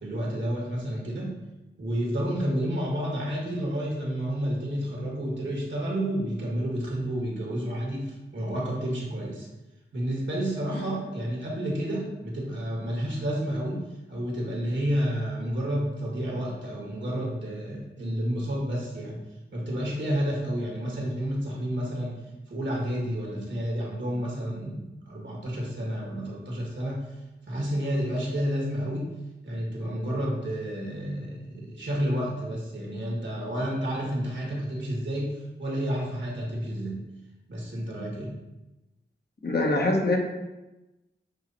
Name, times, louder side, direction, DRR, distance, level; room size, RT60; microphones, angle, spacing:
voice 1, 0.0-1.3 1.8-9.5 9.9-13.8 14.1-19.2 19.5-22.1 22.5-27.0 27.5-29.1 29.4-37.0 37.5-38.3, equal, 70° right, -3 dB, 1.8 m, -30 dB
voice 2, 39.4-40.2, left 2 dB, 55° left, 0 dB, 1.2 m, -24 dB
7.3 x 3.2 x 4.2 m, 1.0 s
wide cardioid pair, 85°, 19 cm